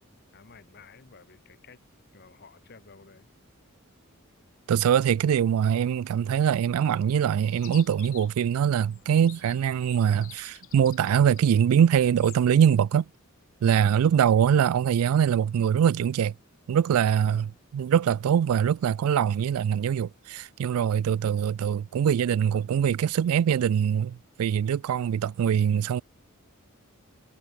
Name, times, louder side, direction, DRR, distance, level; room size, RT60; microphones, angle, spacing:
voice 1, 0.3-1.8 2.1-3.3 13.8-14.2 17.1-17.6, left 4 dB, 50° left, 1.1 m, -53 dB
voice 2, 4.7-13.0 13.6-16.3 16.7-26.0, right 8 dB, 80° right, 0.3 m, -23 dB
Chirp tweet, 7.5-12.6, left 14 dB, 70° left, 4.9 m, -50 dB
head